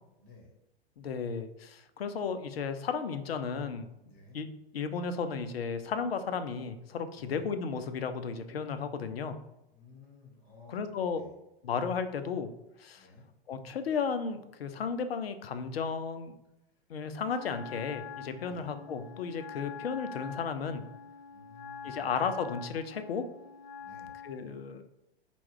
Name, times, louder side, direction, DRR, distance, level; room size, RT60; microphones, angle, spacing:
voice 1, 0.2-0.5 4.0-4.4 7.1-7.4 9.7-11.3 12.9-13.2 18.4-18.7 21.3-22.0 23.8-24.2, left 3 dB, 30° left, -1 dB, 1.4 m, -55 dB
voice 2, 1.0-3.9 4.3-4.5 4.7-9.4 10.7-11.2 11.6-12.5 12.8-13.1 13.5-16.4 16.9-20.8 21.8-23.2 24.2-24.8, left 6 dB, 70° left, 9 dB, 0.5 m, -34 dB
Wind instrument woodwind instrument, 17.2-24.5, left 5 dB, 50° left, 1.1 m, -45 dB
4.3 x 2.3 x 3.6 m, 0.90 s
figure-of-eight pair, 95°, 31 cm